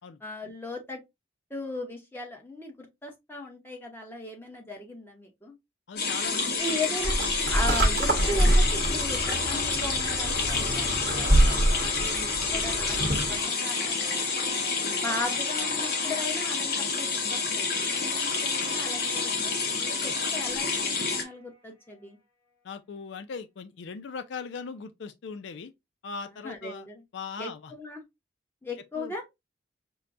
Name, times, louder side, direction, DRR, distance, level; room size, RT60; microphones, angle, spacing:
voice 1, 0.2-1.0 1.5-5.5 6.4-7.1 7.5-14.4 14.9-22.2 26.4-27.0 27.4-28.0 28.6-29.2, left 2 dB, 10° left, 0.9 m, -37 dB
voice 2, 5.9-7.0 12.0-12.1 12.8-12.9 14.9-15.0 20.0-20.1 22.6-25.7 26.0-26.9 27.1-27.7 29.0-29.1, left 5 dB, 70° left, 0.4 m, -39 dB
sound 1, 6.0-21.2, left 4 dB, 55° left, 1.0 m, -29 dB
sound 2, 6.6-21.6 21.9-22.0, left 2 dB, 30° left, 1.7 m, -45 dB
sound 3, 7.0-13.4, right 1 dB, 55° right, 1.0 m, -26 dB
6.1 x 2.2 x 2.5 m
head